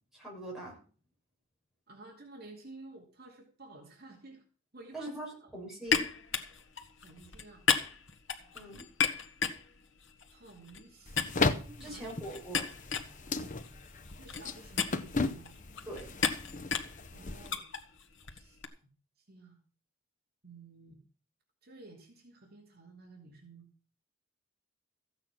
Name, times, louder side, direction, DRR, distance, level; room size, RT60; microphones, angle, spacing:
voice 1, 0.1-0.8 4.9-6.0 8.5-8.8 11.8-12.7 15.9-16.1, right 1 dB, ahead, -4 dB, 7.1 m, -42 dB
voice 2, 1.9-4.4 4.7-5.6 7.0-7.6 10.3-12.2 14.1-15.5 17.1-17.6 18.3-18.8 19.2-19.6 20.4-21.0 21.6-23.7, right 2 dB, 45° right, 0 dB, 2.9 m, -53 dB
sound 1, 5.9-10.9 11.2-18.7, left 6 dB, 60° left, 1.8 m, -35 dB
sound 2, 11.1-17.6, left 3 dB, 35° left, 0.9 m, -36 dB
15.0 x 9.0 x 6.0 m, 0.40 s
head